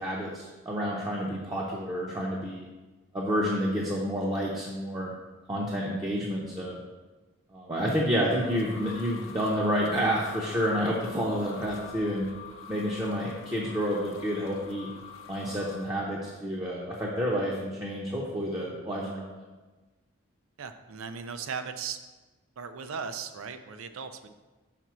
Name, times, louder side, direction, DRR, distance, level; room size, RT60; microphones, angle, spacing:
voice 1, 0.0-2.6 3.1-5.1 5.5-6.8 7.5-12.3 12.6-14.9 15.3-19.5, equal, 20° right, -5 dB, 0.7 m, -29 dB
sound 1, 8.0-15.9, left 6 dB, 80° left, 0.8 m, -46 dB
voice 2, 20.6-22.0 22.6-24.3, right 6 dB, 80° right, 9 dB, 0.5 m, -37 dB
5.9 x 3.9 x 6.1 m, 1.2 s
head